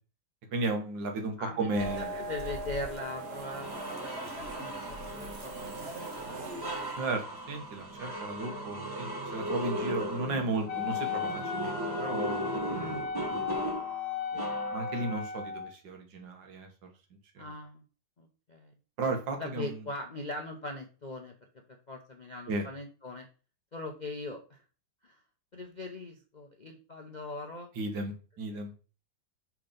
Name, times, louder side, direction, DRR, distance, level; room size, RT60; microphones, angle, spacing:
voice 1, 0.5-2.1 7.0-12.9 13.3-13.4 14.7-17.5 19.0-19.8 22.5-22.7 27.8-28.7, right 2 dB, 75° right, 4 dB, 2.0 m, -35 dB
voice 2, 1.4-1.7 1.9-5.7 6.2-6.4 6.6-7.0 8.0-8.2 8.4-8.7 12.7-13.1 14.3-14.5 17.4-17.8 18.2-18.7 19.4-21.3 21.7-23.3 23.7-24.6 25.0-25.2 25.5-27.7 28.5-28.6, left 2 dB, 45° left, 1 dB, 0.5 m, -41 dB
sound 1, 1.7-7.1, right 1 dB, 45° right, 0.9 m, -40 dB
sound 2, 2.5-2.6 3.2-15.2, right 1 dB, 15° right, 1.0 m, -37 dB
Wind instrument woodwind instrument, 10.7-15.7, left 7 dB, 80° left, 1.5 m, -36 dB
5.9 x 4.0 x 5.1 m, 0.36 s
omnidirectional pair, 2.0 m